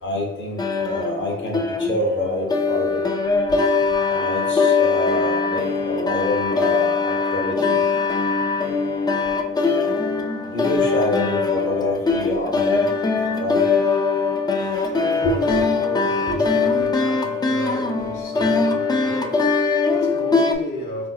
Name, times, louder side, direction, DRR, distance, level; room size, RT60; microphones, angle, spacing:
voice 1, 0.0-3.2 4.1-7.8 10.5-13.0 13.3-13.6 15.2-15.3 16.3-16.4, left 1 dB, 40° left, 1.0 m, -27 dB
sound 1, 0.6-20.5, left 4 dB, 15° left, 0.3 m, -21 dB
voice 2, 14.2-21.1, left 1 dB, 80° left, 0.9 m, -34 dB
3.7 x 2.6 x 2.4 m
cardioid pair, 90°, 30 cm